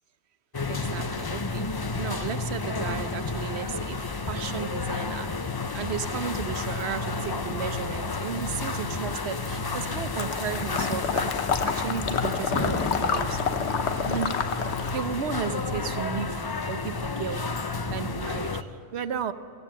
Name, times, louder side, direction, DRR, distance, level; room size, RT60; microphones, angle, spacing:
sound 1, 0.5-18.6, left 3 dB, 35° left, 0.3 m, -31 dB
voice 1, 0.7-5.3 5.7-13.7 14.0-14.5 14.9-17.6 17.9-19.3, right 7 dB, 65° right, 1.0 m, -34 dB
Water / Liquid, 10.2-15.0, left 6 dB, 65° left, 1.2 m, -29 dB
24.0 x 17.0 x 7.5 m
omnidirectional pair, 1.3 m